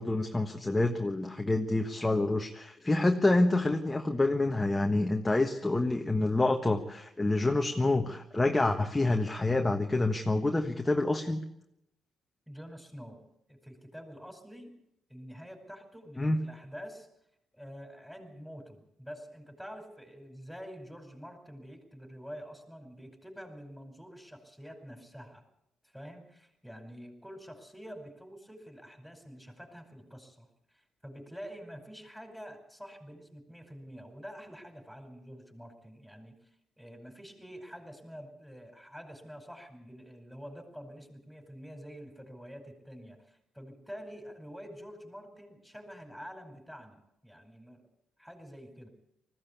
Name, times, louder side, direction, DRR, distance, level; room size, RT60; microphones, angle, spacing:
voice 1, 0.0-11.4 16.2-16.4, left 2 dB, 15° left, 3 dB, 1.4 m, -27 dB
voice 2, 12.5-14.7 15.1-17.1 17.5-25.4 25.8-36.3 36.8-47.8 48.2-48.9, equal, ahead, 4 dB, 5.2 m, -47 dB
20.0 x 15.5 x 8.5 m, 0.82 s
cardioid pair, 90°, 0 cm